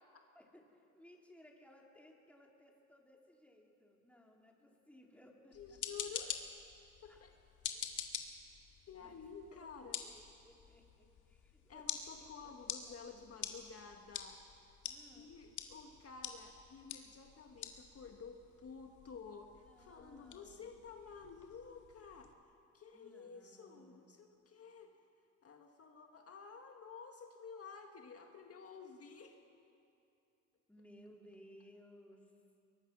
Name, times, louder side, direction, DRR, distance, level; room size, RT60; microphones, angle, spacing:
voice 1, 0.4-5.8 7.1-7.2 9.0-9.1 9.5-9.7 10.0-11.8 12.2-13.3 14.8-15.3 19.7-20.7 22.9-24.0 30.7-32.3, equal, 5° left, -1 dB, 3.7 m, -62 dB
sound 1, 5.5-22.3, left 9 dB, 80° left, 2.0 m, -48 dB
voice 2, 5.5-6.5 7.0-7.3 7.7-7.8 8.9-10.0 11.7-14.4 15.1-22.4 22.7-25.0 25.4-29.4, left 5 dB, 50° left, 3 dB, 1.8 m, -52 dB
23.5 x 22.0 x 6.2 m, 2.7 s
cardioid pair, 90°, 30 cm